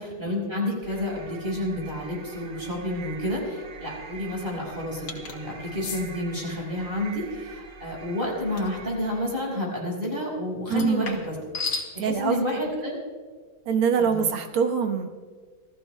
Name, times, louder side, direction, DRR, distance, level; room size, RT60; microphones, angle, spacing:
voice 1, 0.0-11.3 11.9-13.0 14.0-14.2, left 1 dB, 25° right, -2 dB, 5.1 m, -30 dB
sound 1, 0.8-9.4, right 5 dB, 60° right, 1.9 m, -45 dB
sound 2, 5.1-5.4 5.8-6.0 8.6-8.8 10.7-11.9, left 4 dB, 70° left, 2.3 m, -33 dB
voice 2, 10.7-11.2 12.0-12.4 13.7-15.2, right 6 dB, 85° right, 5 dB, 2.0 m, -24 dB
27.5 x 15.5 x 2.2 m, 1.5 s
omnidirectional pair, 2.3 m